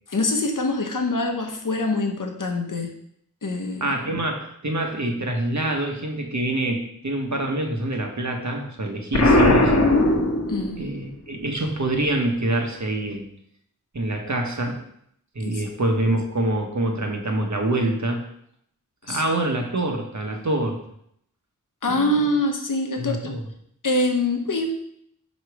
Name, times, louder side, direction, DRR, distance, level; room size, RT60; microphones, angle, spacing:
voice 1, 0.1-2.9 3.4-4.2 10.5-10.9 15.4-15.6 19.1-19.2 21.8-23.4 23.8-24.7, left 2 dB, 70° left, 4 dB, 1.0 m, -25 dB
voice 2, 3.8-9.7 10.8-13.3 13.9-14.8 15.3-18.2 19.1-20.8 21.9-22.2 23.0-23.4, right 1 dB, 60° right, 2 dB, 1.2 m, -25 dB
Explosion, 9.1-11.0, left 1 dB, 50° left, 1.1 m, -18 dB
5.3 x 5.1 x 4.8 m, 0.70 s
wide cardioid pair, 50°, 33 cm